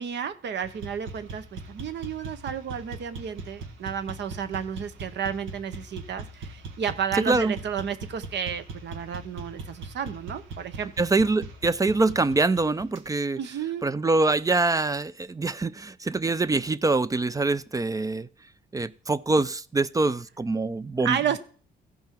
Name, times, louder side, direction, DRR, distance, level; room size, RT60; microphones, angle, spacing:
voice 1, 0.0-10.9 13.4-13.8 21.0-21.4, right 8 dB, 60° right, 1.0 m, -32 dB
sound 1, 0.6-13.1, right 3 dB, 75° right, 1.3 m, -40 dB
voice 2, 11.0-13.4 13.8-18.3 18.7-21.4, right 3 dB, 15° right, 0.4 m, -24 dB
15.0 x 5.5 x 4.5 m
cardioid pair, 90°, 20 cm